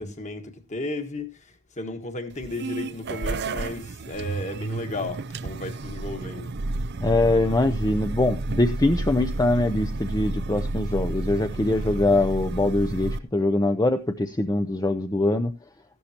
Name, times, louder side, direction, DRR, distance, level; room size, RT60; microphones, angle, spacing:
voice 1, 0.0-6.5 11.3-11.9, left 2 dB, 35° left, 1.6 m, -34 dB
sound 1, 2.3-13.2, right 2 dB, 55° right, 0.6 m, -31 dB
voice 2, 7.0-15.5, left 2 dB, 15° left, 0.6 m, -23 dB
14.5 x 11.5 x 2.9 m
head